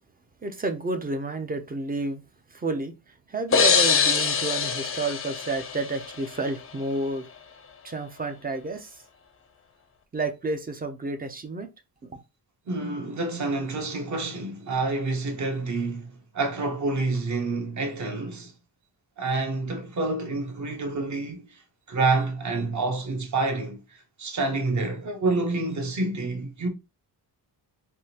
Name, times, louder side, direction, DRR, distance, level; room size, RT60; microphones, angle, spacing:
voice 1, 0.4-2.2 2.5-7.3 7.8-9.0 10.1-11.7 12.1-12.2, right 3 dB, 20° right, 0.4 m, -30 dB
sound 1, 3.5-6.3, left 6 dB, 30° left, 0.5 m, -23 dB
voice 2, 12.7-18.5 19.2-21.6 21.9-26.7, right 3 dB, 45° right, 0.9 m, -28 dB
3.6 x 2.5 x 2.8 m
wide cardioid pair, 120°, 41 cm